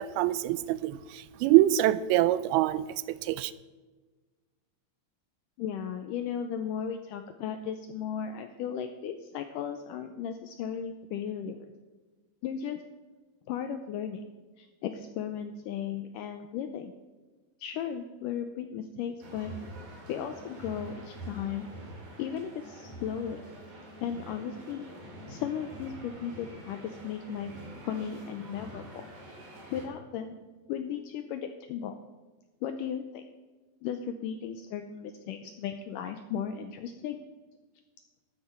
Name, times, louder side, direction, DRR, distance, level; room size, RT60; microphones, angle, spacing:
voice 1, 0.0-3.5, right 14 dB, 85° right, 16 dB, 2.4 m, -25 dB
voice 2, 5.6-11.7 12.4-12.8 13.5-14.2 14.6-16.9 17.6-19.5 20.1-21.8 22.2-23.4 24.0-27.5 27.8-29.4 29.7-30.4 30.7-32.0 32.6-33.2 33.8-37.2, left 8 dB, 85° left, 8 dB, 1.9 m, -36 dB
sound 1, 19.2-29.9, right 1 dB, 55° right, 3.9 m, -46 dB
13.0 x 8.8 x 4.4 m, 1.3 s
omnidirectional pair, 4.4 m